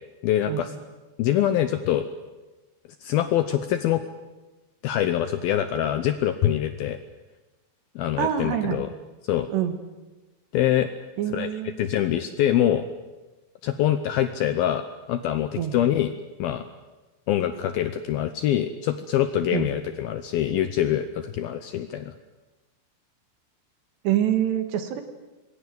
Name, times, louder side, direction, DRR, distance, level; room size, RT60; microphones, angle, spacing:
voice 1, 0.2-0.8 1.2-2.1 3.0-4.0 4.8-7.0 8.0-8.9 9.2-9.5 10.5-10.9 11.3-12.9 13.6-16.1 16.4-16.7 17.3-22.1, left 11 dB, 75° left, 9 dB, 2.3 m, -24 dB
voice 2, 8.2-8.8 9.5-9.8 11.2-11.7 15.5-15.8 19.5-19.7 24.1-25.0, right 10 dB, 70° right, 8 dB, 3.8 m, -25 dB
26.5 x 21.0 x 7.7 m, 1.2 s
omnidirectional pair, 5.3 m